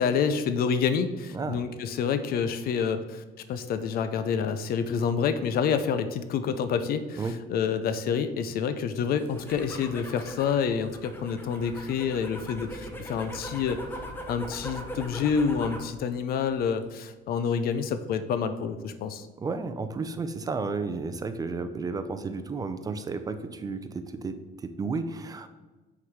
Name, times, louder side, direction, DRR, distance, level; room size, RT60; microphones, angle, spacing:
voice 1, 0.0-7.2 7.5-19.3, left 6 dB, 60° left, 10 dB, 0.5 m, -28 dB
voice 2, 1.3-1.6 7.2-7.4 19.4-25.5, right 4 dB, 20° right, 9 dB, 0.5 m, -32 dB
sound 1, 9.2-15.9 16.3-16.8, equal, 10° left, 0.9 m, -40 dB
6.0 x 3.9 x 4.6 m, 1.2 s
cardioid pair, 110°, 17 cm